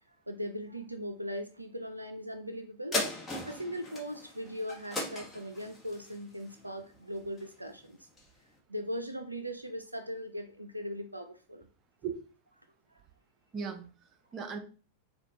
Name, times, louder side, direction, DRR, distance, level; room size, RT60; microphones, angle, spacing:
voice 1, 0.1-3.0 3.5-8.1 8.7-11.7, equal, 85° right, 7 dB, 0.3 m, -39 dB
sound 1, 2.9-7.7 8.2-8.3, left 2 dB, 15° left, 1.0 m, -38 dB
voice 2, 13.5-14.6, right 6 dB, 30° right, 3 dB, 0.6 m, -38 dB
4.2 x 2.1 x 2.7 m, 0.36 s
figure-of-eight pair, 90°, 0 cm